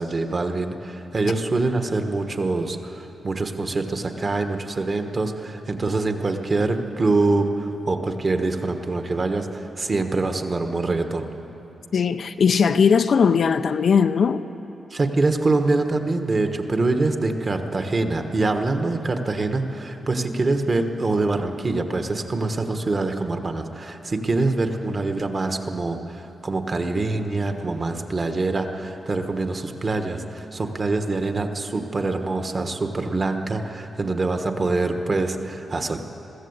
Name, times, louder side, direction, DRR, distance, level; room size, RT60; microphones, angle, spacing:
voice 1, 0.0-11.3 14.9-36.0, right 3 dB, 30° right, 1.2 m, -24 dB
voice 2, 11.9-14.4, left 6 dB, 50° left, 0.6 m, -19 dB
21.0 x 15.0 x 8.1 m
wide cardioid pair, 155°, 0 cm